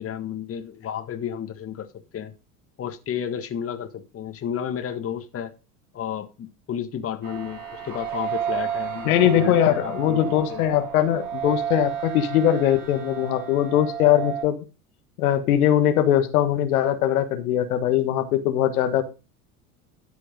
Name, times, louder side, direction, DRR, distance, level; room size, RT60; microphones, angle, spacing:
voice 1, 0.0-1.9 2.1-2.3 2.8-5.5 5.9-10.2 10.5-10.6, left 9 dB, 30° left, 1.6 m, -32 dB
sound 1, 7.2-14.4, right 9 dB, 40° right, 7.5 m, -32 dB
voice 2, 9.0-14.6 15.2-19.0, left 11 dB, 70° left, 1.5 m, -21 dB
12.5 x 5.1 x 5.2 m
hypercardioid pair, 80°, 45 cm